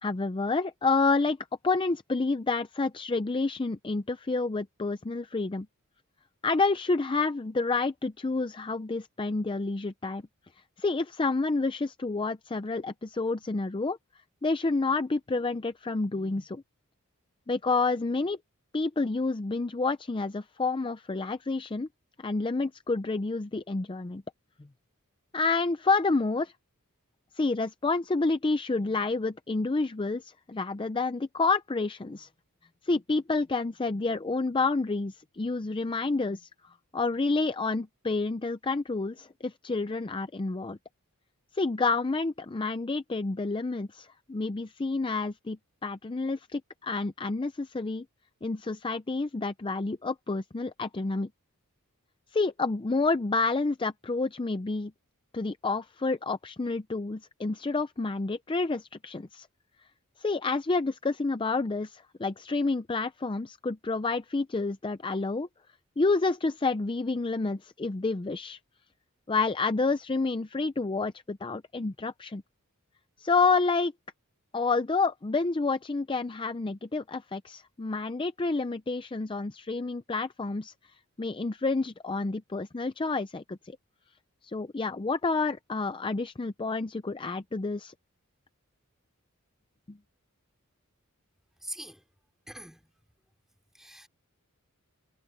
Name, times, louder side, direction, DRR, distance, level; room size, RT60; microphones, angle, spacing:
voice 1, 0.0-1.4 1.6-5.7 6.4-10.2 10.8-14.0 14.4-16.6 17.5-18.4 18.7-21.9 22.2-24.2 25.3-26.5 27.3-32.3 32.8-36.5 36.9-40.8 41.5-48.0 48.4-51.3 52.3-54.9 55.3-59.5 60.2-65.5 66.0-68.6 69.3-72.4 73.2-73.9 74.5-80.7 81.2-83.8 84.4-87.9 89.9-90.0, left 3 dB, 25° left, 0.5 m, -29 dB
voice 2, 91.6-92.0 92.5-92.9 93.8-94.1, right 1 dB, ahead, 2.8 m, -42 dB
head